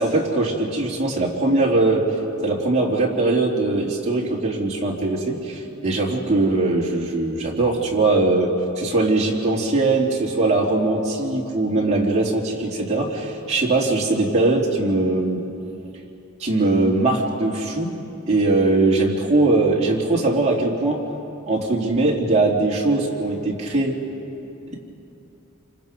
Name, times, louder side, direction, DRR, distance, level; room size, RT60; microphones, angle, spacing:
voice 1, 0.0-2.0 2.4-15.4 16.4-17.9 18.3-21.0 21.5-23.9, right 2 dB, 30° right, -3 dB, 3.2 m, -21 dB
28.5 x 25.0 x 5.4 m, 2.9 s
head